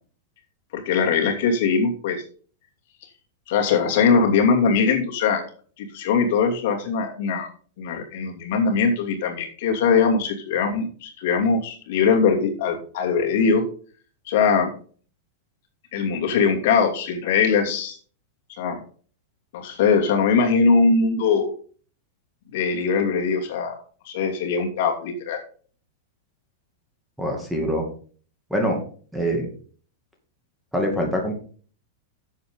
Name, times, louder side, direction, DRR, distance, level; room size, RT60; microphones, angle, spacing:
voice 1, 0.7-2.2 3.5-5.4 5.8-7.5 7.8-13.6 14.3-14.7 15.9-18.0 18.6-18.8 19.5-21.5 22.5-23.8 24.0-25.4, left 5 dB, 55° left, 3 dB, 2.7 m, -21 dB
voice 2, 27.2-27.9 28.5-28.8 29.1-29.5 30.7-31.3, equal, ahead, 1 dB, 2.4 m, -24 dB
11.0 x 7.7 x 3.8 m, 0.42 s
supercardioid pair, 155°, 0 cm